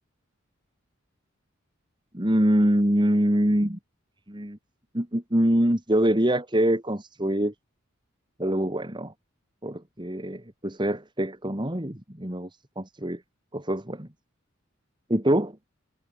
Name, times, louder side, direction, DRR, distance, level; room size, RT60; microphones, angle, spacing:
voice 1, 2.1-3.8 4.3-4.6 4.9-7.5 8.4-9.1 9.6-12.5 12.8-13.2 13.5-14.1 15.1-15.6, right 1 dB, 25° right, 2.5 m, -24 dB
head